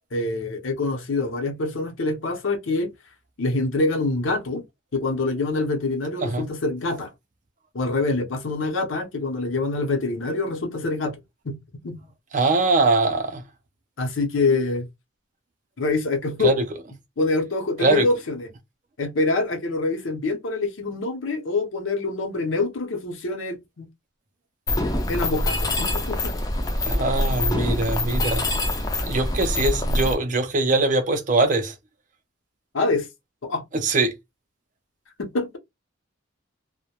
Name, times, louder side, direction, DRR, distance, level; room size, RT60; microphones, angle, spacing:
voice 1, 0.1-2.9 3.4-4.6 4.9-7.1 7.7-11.2 11.4-11.6 11.8-12.0 14.0-14.9 15.8-16.5 17.2-18.5 19.0-23.9 25.1-26.4 32.7-33.1 33.4-33.6 35.2-35.6, left 3 dB, 80° left, 0.7 m, -25 dB
voice 2, 12.3-13.4 16.4-16.6 17.8-18.1 26.9-28.4 29.0-31.7 33.7-34.1, right 3 dB, 40° right, 0.4 m, -22 dB
Mechanisms, 24.7-30.1, left 1 dB, 20° left, 0.4 m, -24 dB
2.1 x 2.1 x 2.8 m
head